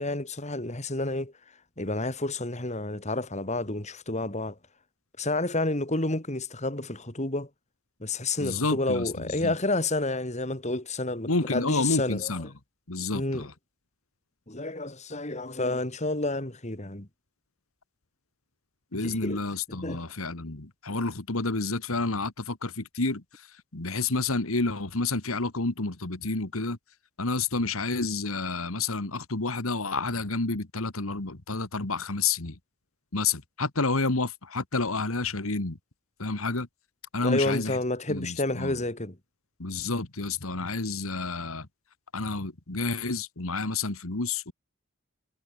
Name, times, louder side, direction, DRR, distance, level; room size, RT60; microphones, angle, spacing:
voice 1, 0.0-1.3 1.8-4.6 5.2-7.5 8.0-12.3 13.1-13.5 14.5-17.1 18.9-19.4 19.7-20.0 37.2-39.2, left 2 dB, 35° left, 3.0 m, -30 dB
voice 2, 8.4-9.5 11.3-12.5 12.9-13.5 18.9-26.8 27.2-32.6 33.1-35.8 36.2-36.7 37.1-37.8 38.1-38.8 39.6-41.7 42.1-44.5, left 3 dB, 80° left, 2.1 m, -30 dB
head